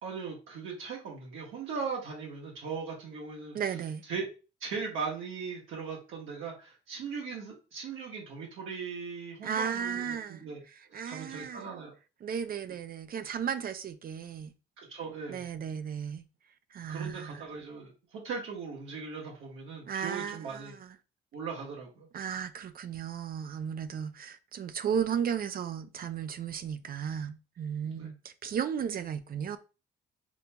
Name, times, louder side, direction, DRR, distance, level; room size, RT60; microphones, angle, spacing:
voice 1, 0.0-3.6 4.1-4.3 4.6-10.6 10.9-11.9 14.8-15.4 16.9-20.7 21.3-22.1 27.9-28.1, right 5 dB, 80° right, 1.2 m, -39 dB
voice 2, 3.5-4.0 9.4-10.4 10.9-11.7 12.2-14.5 15.3-16.2 16.7-17.4 19.9-21.0 22.1-29.6, right 7 dB, 50° right, 0.4 m, -35 dB
5.3 x 2.7 x 2.3 m
cardioid pair, 90°, 20 cm